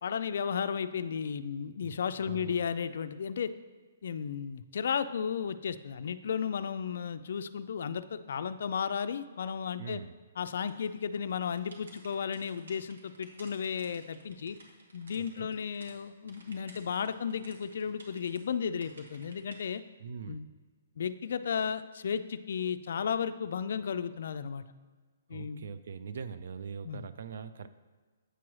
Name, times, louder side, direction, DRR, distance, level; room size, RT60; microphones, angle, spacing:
voice 1, 0.0-3.5 4.0-10.0 10.4-14.6 14.9-19.8 20.3-20.5 21.0-24.6 25.3-25.7 26.8-27.0, left 7 dB, 60° left, 11 dB, 0.3 m, -34 dB
voice 2, 2.2-2.7 9.8-10.1 15.2-15.5 20.0-20.4 25.3-27.7, right 6 dB, 60° right, 12 dB, 0.3 m, -42 dB
sound 1, 10.7-15.9 16.3-18.4 18.8-19.6, right 2 dB, 85° right, 1.5 m, -55 dB
7.9 x 3.1 x 6.1 m, 1.4 s
hypercardioid pair, 160°, 0 cm